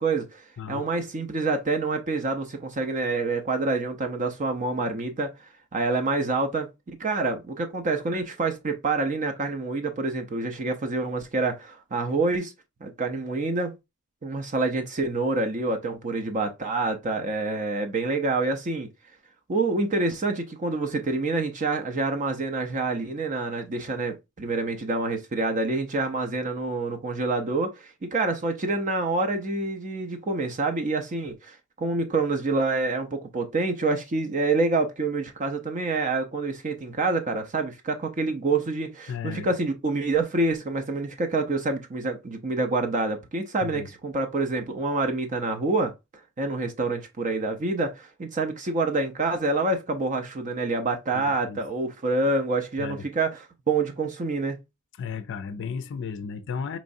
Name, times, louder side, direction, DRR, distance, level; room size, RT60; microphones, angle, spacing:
voice 1, 0.0-6.7 7.0-12.5 12.8-13.7 14.2-18.9 19.5-45.9 46.4-54.6, right 3 dB, 35° right, 0.5 m, -27 dB
voice 2, 39.1-39.5 43.6-43.9 51.1-51.6 52.8-53.1 55.0-56.8, left 6 dB, 55° left, 0.4 m, -34 dB
4.6 x 3.1 x 2.5 m
head